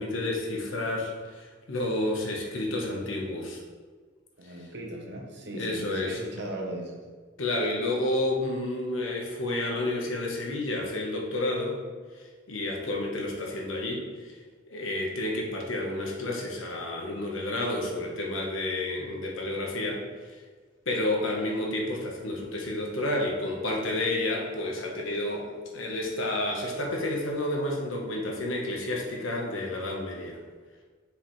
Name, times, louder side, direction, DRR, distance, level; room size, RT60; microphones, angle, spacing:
voice 1, 0.0-3.6 5.5-6.2 7.4-11.8 12.2-14.3 14.7-20.4 20.9-30.4, left 1 dB, 80° left, -1 dB, 1.2 m, -30 dB
voice 2, 4.4-7.0, right 1 dB, 60° right, 1 dB, 1.0 m, -38 dB
6.9 x 4.9 x 3.2 m, 1.5 s
head